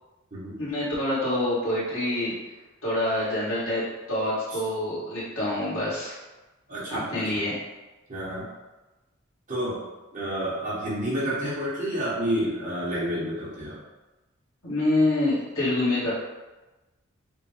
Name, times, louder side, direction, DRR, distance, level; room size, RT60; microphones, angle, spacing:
voice 1, 0.6-2.3 2.8-6.2 6.9-7.6 14.6-16.1, left 1 dB, 85° left, -9 dB, 1.5 m, -26 dB
voice 2, 6.7-7.2 8.1-8.5 9.5-9.8 10.1-13.8, equal, 40° right, -8 dB, 1.3 m, -29 dB
5.0 x 2.0 x 3.5 m, 1.1 s
head